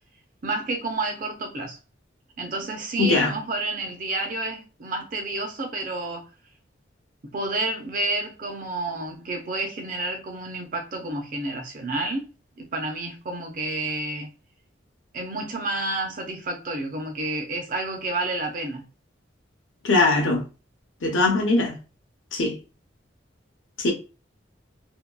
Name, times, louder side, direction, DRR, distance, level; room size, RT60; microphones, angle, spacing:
voice 1, 0.4-1.8 2.4-6.3 7.2-12.3 12.6-14.3 15.1-18.9, right 2 dB, 45° right, 0.5 m, -30 dB
voice 2, 3.0-3.3 19.8-20.4 21.0-21.7 22.3-22.6 23.8-23.9, left 3 dB, 80° left, 0.7 m, -21 dB
2.7 x 2.2 x 2.2 m
head